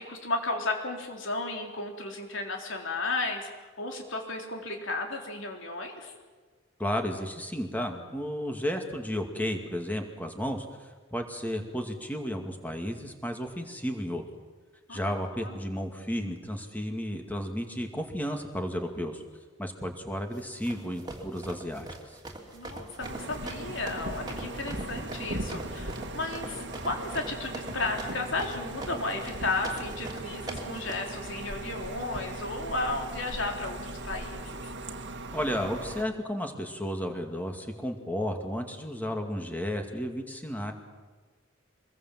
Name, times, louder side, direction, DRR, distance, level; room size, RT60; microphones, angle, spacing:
voice 1, 0.0-6.1 14.9-15.6 22.5-34.7, left 3 dB, 70° left, 2 dB, 3.8 m, -34 dB
voice 2, 6.8-10.7 11.1-14.2 14.9-19.2 19.6-21.9 35.3-40.7, equal, 10° left, 4 dB, 2.3 m, -33 dB
sound 1, 20.3-30.9, right 2 dB, 20° right, 3.1 m, -42 dB
sound 2, 23.0-36.0, right 2 dB, 60° right, 2.0 m, -39 dB
25.0 x 21.5 x 7.7 m, 1.4 s
head